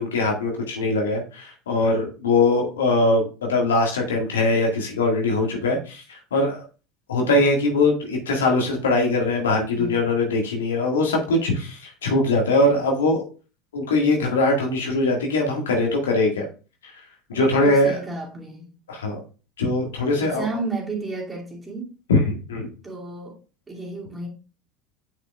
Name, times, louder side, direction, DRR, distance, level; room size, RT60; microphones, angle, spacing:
voice 1, 0.0-6.6 7.1-13.2 13.7-16.5 17.3-18.0 18.9-19.2 19.6-20.5 22.1-22.7, left 2 dB, 75° left, 1.8 m, -21 dB
voice 2, 9.7-10.1 17.3-18.7 20.1-21.9 22.8-23.4 23.7-24.3, right 3 dB, 20° right, 2.5 m, -32 dB
9.0 x 5.8 x 2.3 m
figure-of-eight pair, 70°, 0 cm